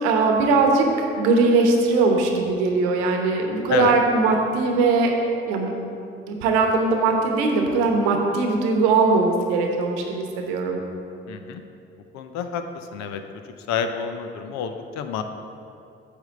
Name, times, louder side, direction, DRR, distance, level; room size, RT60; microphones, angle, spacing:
voice 1, 0.0-0.9 1.2-5.1 5.5-5.7 6.3-10.8, right 3 dB, 80° right, 2 dB, 1.0 m, -20 dB
voice 2, 11.3-11.6 12.1-13.2 13.7-15.2, left 7 dB, 65° left, 7 dB, 0.7 m, -28 dB
9.0 x 3.6 x 6.5 m, 2.6 s
hypercardioid pair, 45°, 29 cm